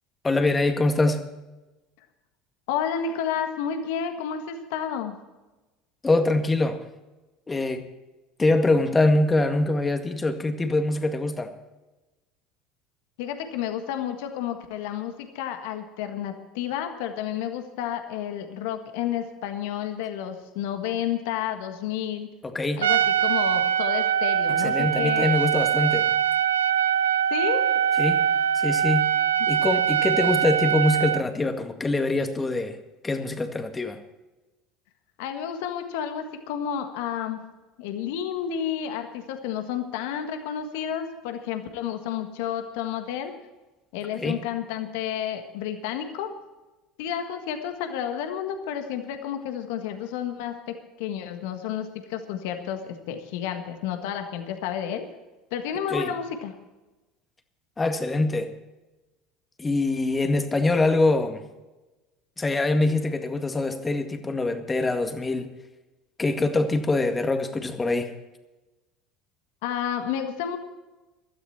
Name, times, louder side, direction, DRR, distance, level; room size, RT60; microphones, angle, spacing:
voice 1, 0.2-1.3 6.0-6.8 7.5-7.9 8.4-11.5 22.4-22.8 24.6-26.1 28.0-28.2 28.5-29.1 29.5-32.8 33.0-34.0 44.2-44.4 55.9-56.1 57.8-58.5 59.6-61.4 62.4-65.5 66.2-68.1, left 2 dB, 20° left, 7 dB, 1.9 m, -24 dB
voice 2, 2.7-5.1 13.2-22.3 22.8-25.3 27.3-27.7 35.2-37.4 37.8-43.3 43.9-46.3 47.0-55.1 55.5-56.5 69.6-70.6, left 9 dB, 70° left, 7 dB, 1.6 m, -31 dB
Trumpet, 22.8-31.2, right 9 dB, 85° right, 0.4 m, -23 dB
17.0 x 13.0 x 4.4 m, 1.1 s
hypercardioid pair, 75°, 0 cm